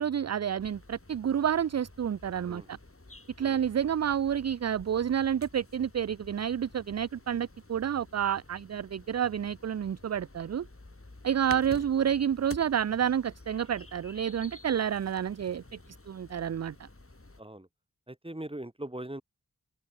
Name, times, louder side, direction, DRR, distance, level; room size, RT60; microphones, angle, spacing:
voice 1, 0.0-2.8 3.4-10.7 11.2-15.6 16.1-16.9, right 9 dB, 50° right, 0.4 m, -29 dB
sound 1, 0.6-17.4, left 2 dB, 40° left, 5.5 m, -51 dB
voice 2, 2.5-2.8 3.4-3.6 11.5-11.8 17.4-17.7 18.1-19.2, right 1 dB, 15° right, 2.9 m, -41 dB
open air
cardioid pair, 40°, 35 cm